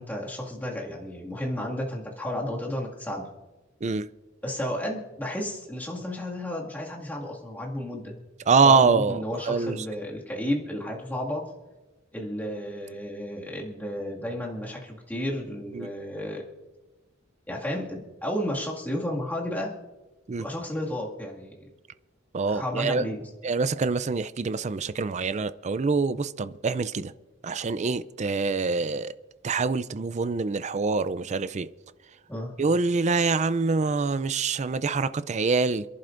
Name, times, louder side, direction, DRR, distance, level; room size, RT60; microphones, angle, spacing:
voice 1, 0.0-3.2 4.4-8.1 8.6-11.4 12.1-16.4 17.5-19.7 20.4-21.5 22.5-23.3 32.3-32.5, left 1 dB, 10° left, -3 dB, 2.1 m, -32 dB
voice 2, 8.5-9.8 15.7-15.9 20.3-20.5 22.3-23.0 23.4-27.1 27.4-29.1 29.4-31.7 32.6-35.8, right 4 dB, 35° right, 14 dB, 0.4 m, -25 dB
28.5 x 11.0 x 2.6 m, 1.1 s
head